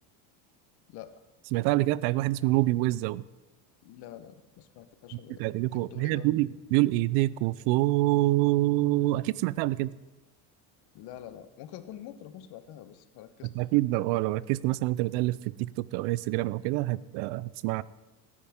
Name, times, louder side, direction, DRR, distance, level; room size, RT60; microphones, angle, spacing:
voice 1, 0.9-1.2 3.8-6.3 10.9-13.5 16.9-17.1, left 11 dB, 60° left, 11 dB, 1.2 m, -46 dB
voice 2, 1.5-3.2 5.4-9.9 13.6-17.8, right 18 dB, 70° right, 20 dB, 0.6 m, -26 dB
18.5 x 9.8 x 3.7 m, 1.1 s
supercardioid pair, 105°, 43 cm